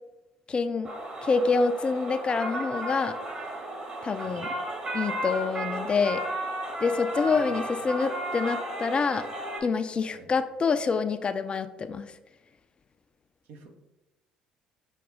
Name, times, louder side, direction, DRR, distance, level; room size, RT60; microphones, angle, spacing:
voice 1, 0.5-0.9 1.2-3.2 4.0-4.5 4.9-6.2 6.8-9.3 9.6-12.1, left 4 dB, 35° left, 10 dB, 0.3 m, -26 dB
sound 1, 0.8-9.6, right 1 dB, 35° right, 1.5 m, -34 dB
voice 2, 4.2-4.4 7.2-7.5 10.1-10.3 13.5-13.8, right 3 dB, 65° right, 4 dB, 0.7 m, -48 dB
6.0 x 2.3 x 3.7 m, 0.98 s
hypercardioid pair, 55°, 3 cm